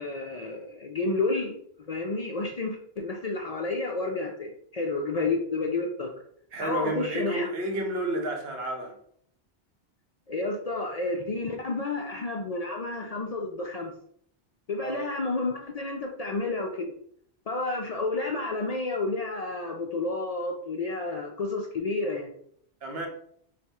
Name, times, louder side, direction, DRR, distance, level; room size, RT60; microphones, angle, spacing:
voice 1, 0.0-1.6 1.9-6.1 6.6-7.5 10.3-13.9 14.7-16.9 17.5-22.3, left 3 dB, 50° left, 1 dB, 0.5 m, -30 dB
voice 2, 6.5-9.0 14.8-15.1 22.8-23.1, right 1 dB, 70° right, 2 dB, 1.1 m, -31 dB
3.4 x 2.5 x 4.1 m, 0.65 s
omnidirectional pair, 1.1 m